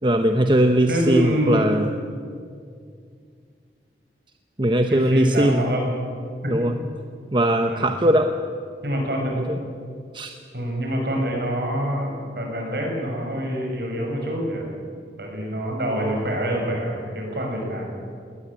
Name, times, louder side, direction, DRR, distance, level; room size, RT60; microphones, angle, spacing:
voice 1, 0.0-1.9 4.6-5.6 6.5-6.7 7.3-8.3 9.3-9.6 10.1-10.3, right 1 dB, 25° right, 6 dB, 0.9 m, -20 dB
voice 2, 0.9-1.8 4.9-5.9 6.4-6.5 7.7-8.0 8.8-9.4 10.5-14.6 15.2-17.9, equal, 60° right, 0 dB, 6.9 m, -26 dB
20.0 x 19.5 x 8.9 m, 2.2 s
head